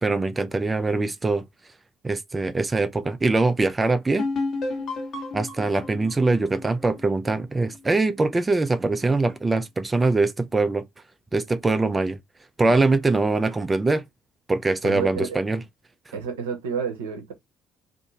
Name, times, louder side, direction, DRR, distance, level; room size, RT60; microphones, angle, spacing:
voice 1, 0.0-1.4 2.0-4.3 5.3-10.8 11.3-12.2 12.6-14.0 14.5-15.6 16.1-16.2, right 3 dB, 20° right, 0.3 m, -23 dB
sound 1, 4.2-7.8, left 3 dB, 50° left, 1.0 m, -31 dB
voice 2, 14.8-15.3 16.1-17.3, right 6 dB, 75° right, 0.6 m, -30 dB
2.6 x 2.5 x 2.7 m
figure-of-eight pair, 50°, 0 cm